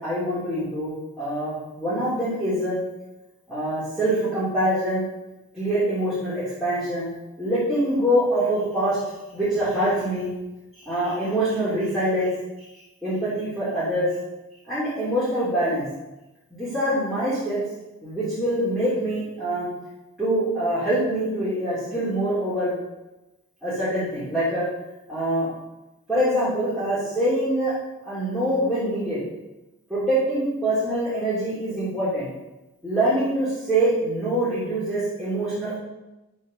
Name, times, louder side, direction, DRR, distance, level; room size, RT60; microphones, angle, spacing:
voice 1, 0.0-2.8 3.5-5.0 5.5-7.1 7.4-9.0 9.3-10.3 10.9-12.3 13.0-14.1 14.7-15.8 16.5-17.6 18.0-19.7 20.2-22.7 23.6-24.7 25.1-25.5 26.1-27.7 28.0-29.2 29.9-32.3 32.8-35.8, right 1 dB, ahead, -13 dB, 3.2 m, -24 dB
10.0 x 8.3 x 5.3 m, 1.0 s
head